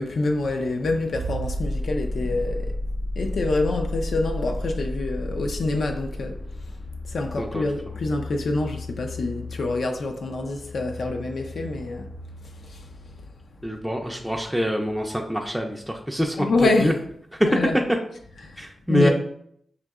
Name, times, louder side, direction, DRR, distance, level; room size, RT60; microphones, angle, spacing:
voice 1, 0.0-2.8 3.2-6.4 7.1-12.1 12.6-12.9 16.4-17.0 17.4-17.7 18.4-19.1, left 3 dB, 70° left, 0.4 m, -26 dB
sound 1, 1.1-9.6 11.1-11.2, left 1 dB, 60° right, 0.4 m, -31 dB
voice 2, 13.6-16.4 16.6-16.9 18.6-19.1, equal, ahead, 0.4 m, -25 dB
4.9 x 2.7 x 2.3 m
wide cardioid pair, 85°, 0 cm